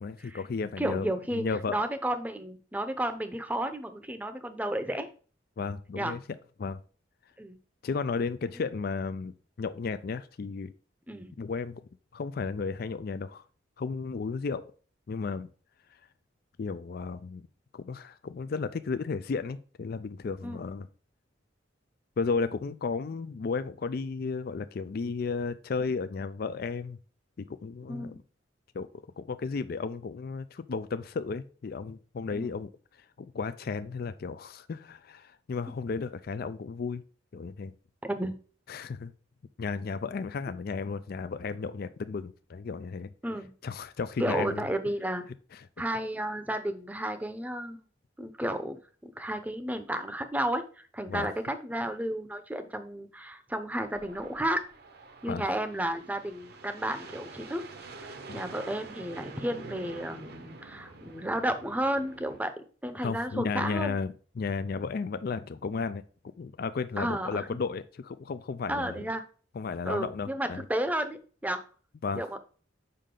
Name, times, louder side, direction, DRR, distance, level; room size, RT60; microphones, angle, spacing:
voice 1, 0.0-1.8 5.6-6.2 6.6-6.8 7.8-10.7 11.4-11.8 12.1-13.4 13.8-14.6 15.1-15.5 16.6-17.5 17.7-20.9 22.2-27.0 27.4-28.2 28.7-28.9 29.2-32.7 33.0-37.0 37.3-37.7 38.7-39.1 39.6-43.1 43.6-44.7 45.5-45.6 51.1-51.3 55.3-55.5 58.3-58.4 63.0-66.0 66.4-69.1 69.5-70.6 72.0-72.2, left 4 dB, 50° left, 0.4 m, -34 dB
voice 2, 0.8-5.1 5.9-6.1 7.4-7.6 11.1-11.3 20.4-20.6 27.9-28.2 32.3-32.5 38.0-38.4 43.2-43.5 44.2-45.3 45.8-47.8 48.2-54.6 55.2-57.6 58.0-64.0 67.0-67.6 68.7-69.2 69.9-71.6 72.1-72.4, right 1 dB, 10° right, 0.7 m, -32 dB
sound 1, 53.8-62.4, right 3 dB, 55° right, 0.9 m, -47 dB
6.7 x 5.4 x 3.8 m
head